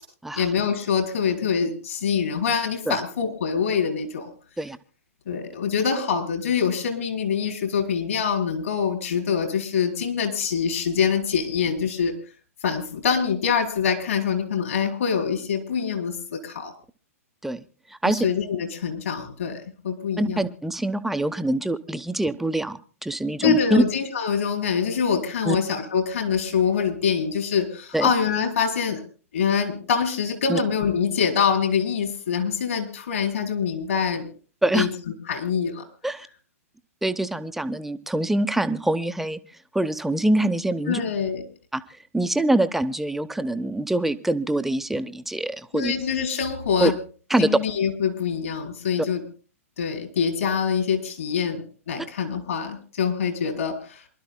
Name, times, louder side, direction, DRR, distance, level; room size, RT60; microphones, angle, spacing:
voice 1, 0.4-4.3 5.3-12.1 12.6-16.7 18.0-20.4 23.4-29.0 29.3-34.3 34.7-34.9 35.3-35.8 40.9-41.4 45.7-46.9 47.4-49.2 49.8-54.1, left 6 dB, 65° left, 3 dB, 4.2 m, -25 dB
voice 2, 17.9-18.3 20.2-23.8 25.5-25.6 27.9-28.1 30.5-30.6 34.6-34.9 36.0-36.3 37.0-39.4 39.7-41.0 41.7-41.8 42.1-45.9 46.8-46.9 47.3-47.5, right 1 dB, 5° right, 11 dB, 0.7 m, -24 dB
28.0 x 12.0 x 2.2 m, 0.39 s
figure-of-eight pair, 110°, 8 cm